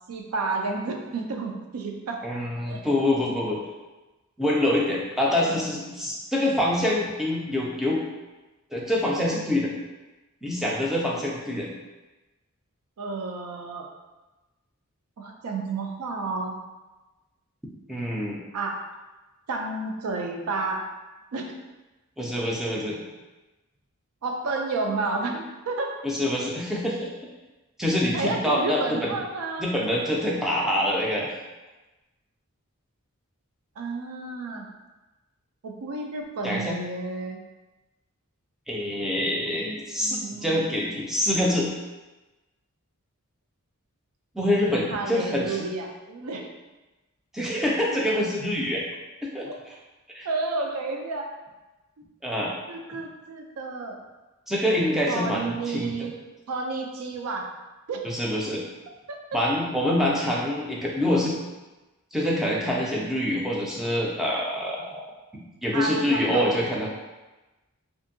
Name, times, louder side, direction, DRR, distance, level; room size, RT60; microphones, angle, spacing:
voice 1, 0.1-2.2 2.7-2.8 5.3-5.7 13.0-13.9 15.2-16.6 18.5-18.8 19.5-20.8 21.3-21.5 24.2-26.0 28.1-29.7 33.8-34.7 35.6-37.4 39.6-40.8 44.9-46.5 49.5-49.6 50.2-51.3 52.0-52.1 52.7-54.0 55.1-56.1 56.5-57.5 57.9-58.0 59.1-59.4 65.7-66.5, right 3 dB, 80° right, 2 dB, 0.4 m, -31 dB
voice 2, 2.2-3.6 4.4-8.0 8.7-9.7 10.4-11.7 17.9-18.4 22.2-23.0 26.0-27.1 27.8-29.1 29.6-31.3 36.4-36.8 38.7-41.7 44.3-45.6 47.3-48.8 49.3-49.5 50.1-50.3 52.2-52.5 54.5-56.1 58.0-58.6 59.3-61.3 62.1-65.0 65.3-66.9, left 1 dB, ahead, -4 dB, 0.3 m, -25 dB
2.6 x 2.5 x 2.6 m, 1.1 s
head